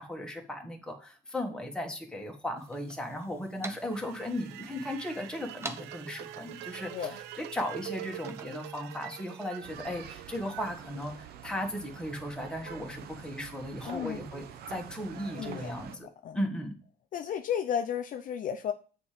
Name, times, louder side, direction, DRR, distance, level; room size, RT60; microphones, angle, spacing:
voice 1, 0.0-16.1 16.3-16.8, left 1 dB, 5° left, 1 dB, 1.6 m, -36 dB
sound 1, 2.6-8.5, right 2 dB, 15° right, 0.7 m, -48 dB
sound 2, 3.8-11.8, right 14 dB, 90° right, 0.4 m, -45 dB
sound 3, 9.6-16.0, right 9 dB, 70° right, 0.8 m, -46 dB
voice 2, 13.9-14.2 15.3-15.7 16.0-16.4 17.1-18.7, left 8 dB, 50° left, 7 dB, 0.6 m, -33 dB
6.9 x 4.5 x 5.1 m, 0.38 s
cardioid pair, 110°, 17 cm